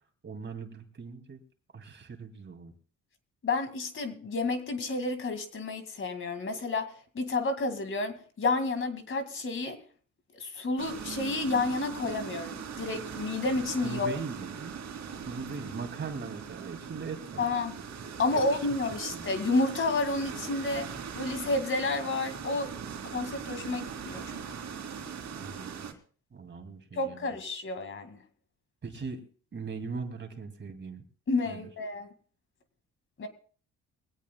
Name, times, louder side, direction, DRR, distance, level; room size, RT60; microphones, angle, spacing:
voice 1, 0.2-1.4 1.7-2.7 13.8-14.8 15.2-17.5 18.3-18.6 19.1-19.3 25.3-25.8 26.3-27.3 28.8-29.2 29.5-31.0 31.5-31.7, right 5 dB, 40° right, 5 dB, 2.5 m, -40 dB
voice 2, 3.4-9.8 10.3-14.1 17.4-17.8 18.2-22.7 23.0-24.4 26.9-28.2 31.3-32.1 33.2-33.3, left 3 dB, 45° left, 8 dB, 2.1 m, -30 dB
sound 1, 10.8-25.9, right 6 dB, 60° right, 2.7 m, -40 dB
22.5 x 17.0 x 2.3 m, 0.42 s
cardioid pair, 90°, 30 cm